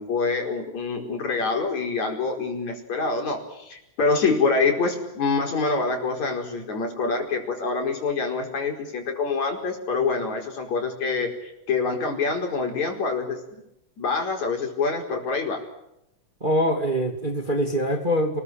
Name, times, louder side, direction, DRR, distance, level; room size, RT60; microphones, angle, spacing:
voice 1, 0.0-13.6 14.0-15.6, left 4 dB, 70° left, 2 dB, 6.2 m, -26 dB
voice 2, 16.4-18.4, equal, 15° right, 4 dB, 2.5 m, -24 dB
29.5 x 21.5 x 9.0 m, 0.84 s
omnidirectional pair, 3.4 m